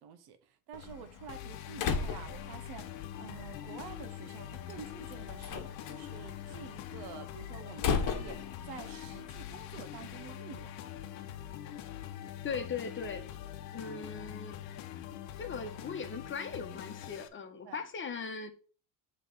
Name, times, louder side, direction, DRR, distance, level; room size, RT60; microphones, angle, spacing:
voice 1, 0.0-10.7 17.6-17.8, right 8 dB, 70° right, 1.0 m, -49 dB
Slam, 0.7-10.2, left 6 dB, 55° left, 1.1 m, -39 dB
sound 1, 1.3-17.3, left 11 dB, 90° left, 0.8 m, -44 dB
voice 2, 12.4-13.2 13.7-14.6 15.4-18.5, left 5 dB, 30° left, 1.1 m, -39 dB
8.1 x 3.3 x 4.0 m
cardioid pair, 110°, 39 cm